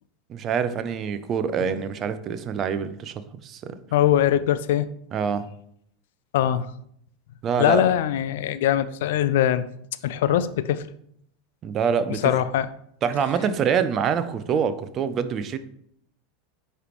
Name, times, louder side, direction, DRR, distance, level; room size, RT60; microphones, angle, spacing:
voice 1, 0.3-3.1 3.4-3.8 5.1-5.5 7.4-7.8 11.6-12.3 13.0-15.6, right 7 dB, 35° right, 12 dB, 0.5 m, -25 dB
voice 2, 3.9-4.9 6.3-6.7 7.6-9.7 10.0-10.8 12.1-12.7, left 11 dB, 65° left, 14 dB, 0.4 m, -22 dB
9.5 x 3.3 x 3.1 m, 0.69 s
figure-of-eight pair, 85°, 0 cm